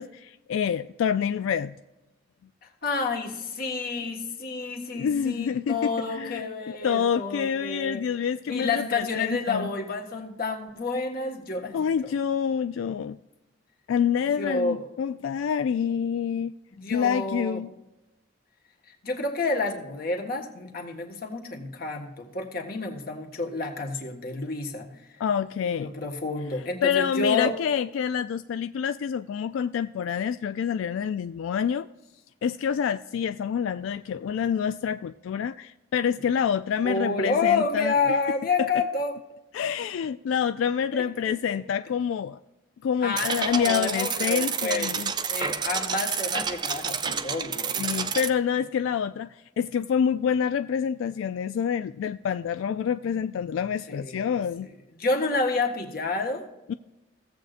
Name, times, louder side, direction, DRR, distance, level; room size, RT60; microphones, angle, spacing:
voice 1, 0.0-1.8 4.9-6.5 6.8-9.7 11.7-13.2 13.9-16.5 16.9-17.7 25.2-25.9 26.8-31.9 32.4-38.2 38.6-38.7 39.5-42.4 42.8-45.1 47.8-54.7 56.7-56.8, left 7 dB, 85° left, 11 dB, 0.3 m, -27 dB
voice 2, 2.6-8.0 8.5-11.8 12.0-12.1 14.4-14.9 16.8-17.6 19.0-24.9 25.8-27.5 36.2-36.3 36.8-39.2 40.9-41.6 43.0-44.9 45.3-48.0 53.9-54.4 55.0-56.5, left 3 dB, 50° left, 1 dB, 1.5 m, -29 dB
sound 1, 43.2-48.3, right 6 dB, 20° right, 0.4 m, -29 dB
16.0 x 7.8 x 2.5 m, 1.0 s
head